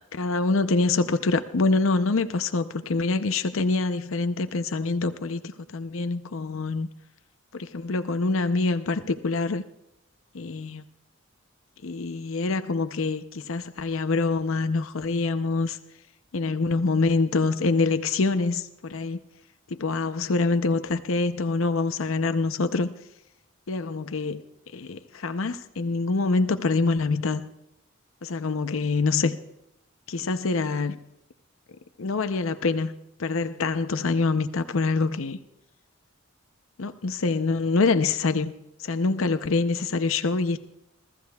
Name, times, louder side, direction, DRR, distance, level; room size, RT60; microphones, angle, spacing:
voice 1, 0.1-6.9 7.5-9.6 10.3-10.8 11.8-15.8 16.3-19.2 19.7-22.9 23.7-24.4 24.7-27.5 28.2-29.4 30.1-31.0 32.0-32.9 33.2-35.4 36.8-38.5 38.8-40.6, left 3 dB, 75° left, 0.7 m, -25 dB
21.5 x 14.0 x 2.3 m
head